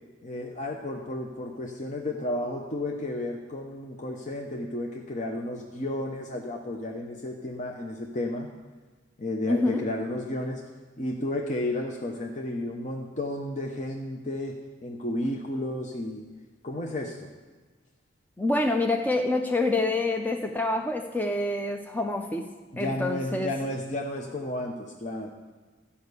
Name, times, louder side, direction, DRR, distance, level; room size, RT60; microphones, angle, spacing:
voice 1, 0.2-8.5 9.2-10.6 11.0-16.2 16.6-17.3 22.7-25.3, left 1 dB, 35° left, 1 dB, 0.8 m, -32 dB
voice 2, 9.5-9.8 18.4-22.5 22.8-23.5, left 2 dB, 10° left, 4 dB, 0.5 m, -27 dB
12.5 x 5.6 x 8.1 m, 1.4 s
head